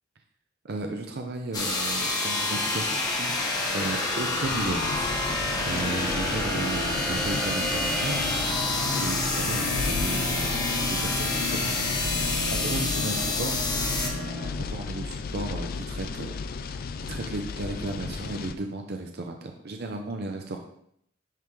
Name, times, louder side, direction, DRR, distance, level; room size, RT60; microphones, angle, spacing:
voice 1, 0.6-3.4 3.7-8.2 9.0-13.6 14.6-16.8 17.1-20.6, right 2 dB, 55° right, 4 dB, 0.6 m, -35 dB
sound 1, 1.5-14.1, left 2 dB, 20° left, 1.1 m, -28 dB
sound 2, 4.4-18.6, left 4 dB, 50° left, 0.4 m, -34 dB
sound 3, 5.7-14.5, left 1 dB, 80° right, 1.6 m, -35 dB
10.0 x 3.7 x 3.2 m, 0.69 s
head